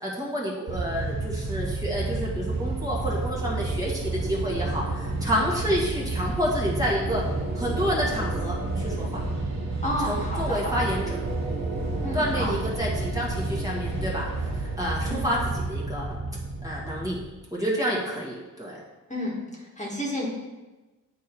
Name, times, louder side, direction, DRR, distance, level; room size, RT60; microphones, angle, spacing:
voice 1, 0.0-7.2 7.6-9.1 10.0-11.0 12.1-14.3 14.8-16.2 16.6-17.2 17.5-18.8, equal, 10° right, -5 dB, 1.8 m, -29 dB
sound 1, 0.7-17.2, right 2 dB, 55° right, 1.0 m, -31 dB
sound 2, 1.4-16.3, right 1 dB, 35° right, 1.9 m, -38 dB
voice 2, 9.8-10.7 12.0-12.5 15.0-15.3 19.1-20.3, left 1 dB, 20° left, -4 dB, 1.7 m, -31 dB
9.6 x 4.7 x 4.6 m, 1.1 s
wide cardioid pair, 125°, 33 cm